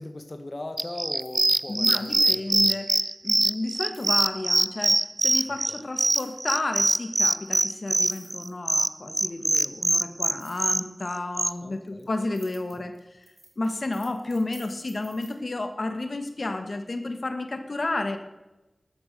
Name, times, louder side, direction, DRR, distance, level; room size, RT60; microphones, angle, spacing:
voice 1, 0.0-2.8 5.7-5.8 11.6-12.1, left 1 dB, 40° left, 6 dB, 1.5 m, -39 dB
sound 1, 0.8-11.5, right 2 dB, 35° right, 0.5 m, -23 dB
sound 2, 1.1-2.4 3.9-4.3 6.1-6.5 7.5-7.6 7.9-9.0 10.4-10.7 11.5-15.3, right 2 dB, 60° right, 3.3 m, -51 dB
voice 2, 1.7-2.9 3.2-13.2 13.6-18.2, left 2 dB, 60° left, 7 dB, 1.6 m, -31 dB
13.5 x 12.0 x 6.7 m, 1.0 s
wide cardioid pair, 50°, 0 cm